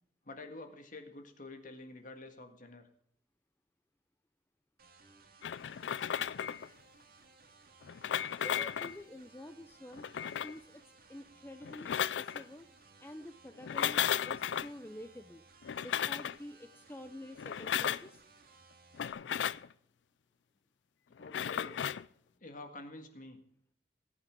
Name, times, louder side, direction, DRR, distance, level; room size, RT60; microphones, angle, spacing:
voice 1, 0.3-2.8 21.2-21.8 22.4-23.4, left 2 dB, 50° left, 6 dB, 1.8 m, -48 dB
sound 1, 4.8-19.1, right 4 dB, 55° right, 2.0 m, -61 dB
sound 2, 5.4-6.7 7.8-9.0 9.9-10.6 11.6-12.4 13.6-14.7 15.6-16.4 17.4-18.1 18.9-19.7 21.2-22.1, left 9 dB, 85° left, 0.4 m, -35 dB
voice 2, 8.4-10.1 10.4-10.8 11.1-12.7 13.0-15.4 15.8-18.2, left 1 dB, 15° left, 8 dB, 0.5 m, -49 dB
19.5 x 8.5 x 3.7 m, 0.69 s
head